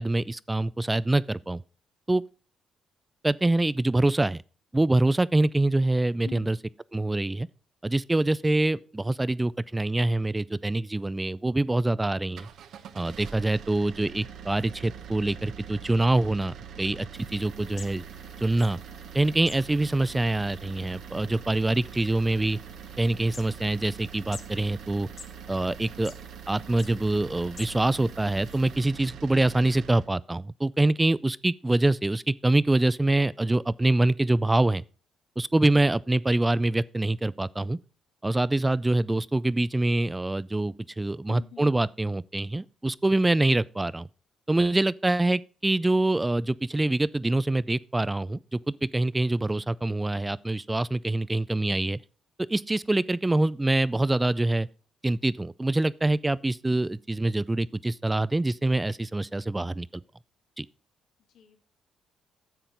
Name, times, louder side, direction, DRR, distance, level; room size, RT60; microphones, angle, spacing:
voice 1, 0.0-1.6 2.1-2.2 3.2-4.4 4.7-6.6 6.9-7.5 7.8-12.5 12.9-18.0 18.4-18.8 19.1-22.6 23.0-25.1 25.5-26.1 26.5-34.8 35.4-37.8 38.2-44.1 44.5-52.0 52.5-54.7 55.0-59.9 60.6-60.7, right 2 dB, 15° right, 0.4 m, -25 dB
voice 2, 6.2-6.6 41.3-41.8 61.3-61.6, left 8 dB, 75° left, 1.7 m, -45 dB
sound 1, 12.2-30.1, right 8 dB, 75° right, 0.9 m, -44 dB
sound 2, 17.1-28.8, left 5 dB, 45° left, 1.4 m, -51 dB
10.0 x 7.5 x 3.9 m
cardioid pair, 90°, 0 cm